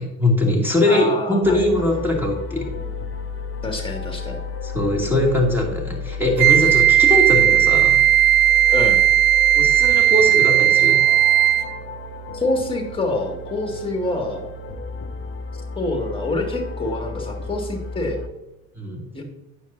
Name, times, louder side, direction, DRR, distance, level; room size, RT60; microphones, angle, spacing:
voice 1, 0.0-2.7 4.6-8.0 9.5-11.0 18.8-19.0, left 1 dB, 5° right, -1 dB, 2.7 m, -21 dB
voice 2, 0.8-2.1 3.6-4.4 8.7-9.1 12.3-14.5 15.8-18.2 19.1-19.2, left 2 dB, 10° left, 3 dB, 2.1 m, -26 dB
sound 1, 1.4-18.3, left 4 dB, 30° left, 0.9 m, -33 dB
Wind instrument woodwind instrument, 6.4-11.8, right 11 dB, 50° right, 0.5 m, -15 dB
9.0 x 6.8 x 2.7 m, 0.95 s
hypercardioid pair, 70°, 43 cm